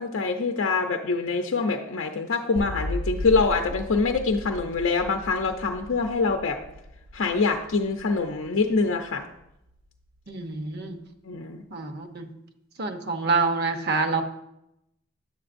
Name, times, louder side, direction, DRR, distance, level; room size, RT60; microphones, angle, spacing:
voice 1, 0.0-6.6 7.1-9.2 11.2-11.6, left 4 dB, 75° left, 4 dB, 0.6 m, -25 dB
sound 1, 2.6-9.8, left 1 dB, 90° right, 0.7 m, -37 dB
voice 2, 10.3-11.0 11.7-12.3 12.8-14.2, right 4 dB, 55° right, 7 dB, 0.8 m, -27 dB
10.0 x 7.8 x 2.5 m, 0.83 s
head